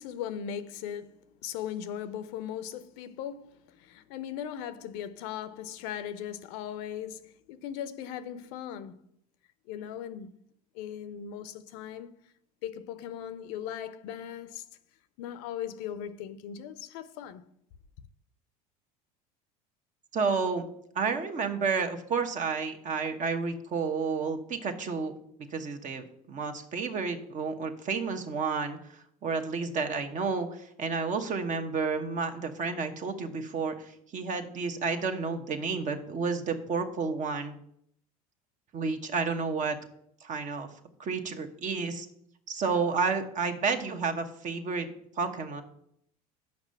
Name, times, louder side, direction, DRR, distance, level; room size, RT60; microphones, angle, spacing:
voice 1, 0.0-9.0 9.7-10.4 10.7-12.1 12.6-14.6 15.2-17.4, left 9 dB, 70° left, 0.6 m, -38 dB
voice 2, 20.1-20.6 20.9-25.1 25.5-37.6 38.7-39.8 40.2-40.7 41.0-42.1 42.5-45.6, right 5 dB, 40° right, 1.1 m, -31 dB
5.9 x 5.4 x 6.8 m
supercardioid pair, 90°, 19 cm